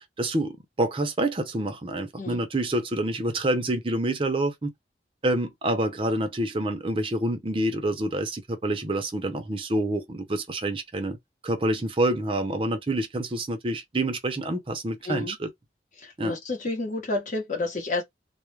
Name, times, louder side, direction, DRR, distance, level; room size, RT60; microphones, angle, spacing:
voice 1, 0.2-4.7 5.2-11.2 11.4-15.5 16.2-16.4, right 1 dB, 30° right, 0.6 m, -27 dB
voice 2, 16.0-18.0, left 2 dB, 45° left, 0.9 m, -30 dB
2.3 x 2.1 x 3.1 m
head